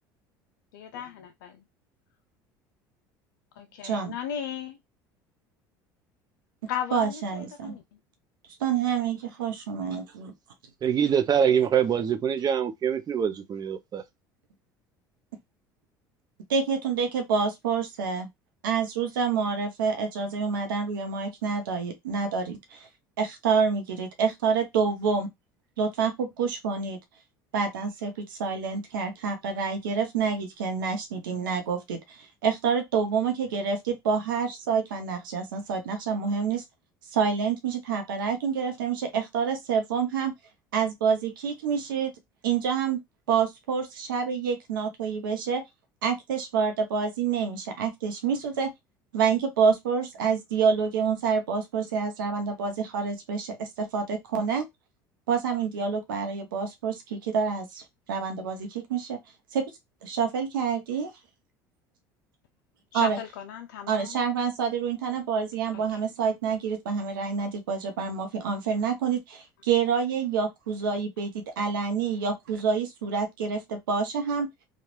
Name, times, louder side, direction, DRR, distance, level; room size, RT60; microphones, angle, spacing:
voice 1, 0.7-1.5 3.6-4.8 6.7-7.8 62.9-64.2 65.7-66.0, left 9 dB, 80° left, 0.4 m, -36 dB
voice 2, 3.8-4.1 6.9-7.8 8.6-10.3 16.5-18.3 18.6-22.9 23.2-25.3 25.8-27.0 27.5-36.6 37.1-40.3 40.7-42.1 42.4-43.0 43.3-45.6 46.0-48.7 49.1-54.7 55.3-57.8 58.1-59.2 59.5-59.7 60.0-61.1 62.9-63.2 63.9-74.5, right 6 dB, 85° right, 0.8 m, -27 dB
voice 3, 10.8-14.0, right 8 dB, 40° right, 0.6 m, -24 dB
3.2 x 2.4 x 3.0 m
hypercardioid pair, 75°, 11 cm